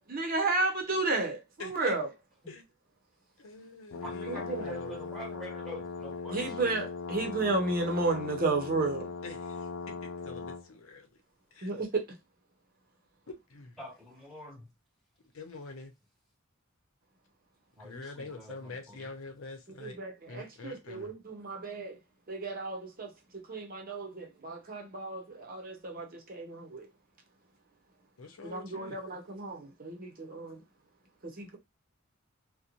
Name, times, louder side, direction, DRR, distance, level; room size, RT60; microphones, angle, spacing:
voice 1, 0.0-2.1 4.3-4.6 6.3-9.1 11.6-12.0 19.8-22.0 22.3-26.9 28.4-30.6 31.2-31.6, right 3 dB, 45° right, 0.7 m, -33 dB
voice 2, 1.6-2.0 2.5-2.6 3.4-5.0 9.2-11.2 11.5-11.7 13.3-13.8 15.3-15.9 17.8-20.0 20.3-21.1 28.2-29.0, left 3 dB, 85° left, 0.7 m, -45 dB
sound 1, 3.9-10.7, left 4 dB, 65° left, 0.4 m, -39 dB
voice 3, 4.0-6.8 13.8-14.7 17.7-19.1, equal, ahead, 1.3 m, -46 dB
2.9 x 2.1 x 2.5 m
head